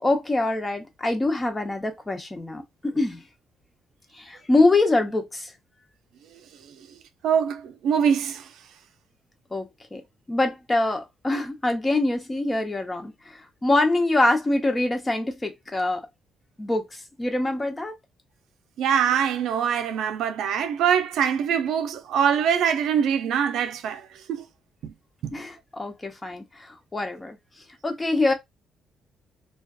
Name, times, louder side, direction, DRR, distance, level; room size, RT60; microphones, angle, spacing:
voice 1, 0.0-3.2 4.1-5.5 9.5-10.0 10.3-16.0 16.6-17.9 25.3-27.4 27.8-28.3, left 2 dB, 20° left, 0.7 m, -24 dB
voice 2, 7.2-8.5 18.8-24.4 24.8-24.9 25.2-25.3, right 8 dB, 80° right, 0.4 m, -23 dB
2.5 x 2.3 x 2.3 m
cardioid pair, 90°, 0 cm